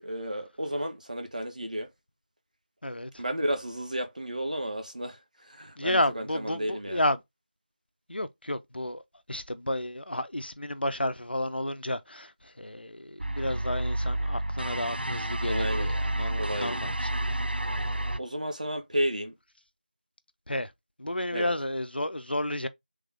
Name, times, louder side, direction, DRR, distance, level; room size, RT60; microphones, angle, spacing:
voice 1, 0.0-1.9 3.2-7.0 15.4-15.9 16.4-16.9 18.2-19.3 21.3-21.5, right 1 dB, 50° right, 1.1 m, -32 dB
voice 2, 2.8-3.2 5.8-7.2 8.1-9.0 9.3-17.2 17.7-17.9 20.5-20.7 21.0-22.7, left 1 dB, 85° left, 0.6 m, -31 dB
sound 1, 13.2-18.2, right 1 dB, 90° right, 0.5 m, -30 dB
3.5 x 3.5 x 3.4 m
figure-of-eight pair, 175°, 5 cm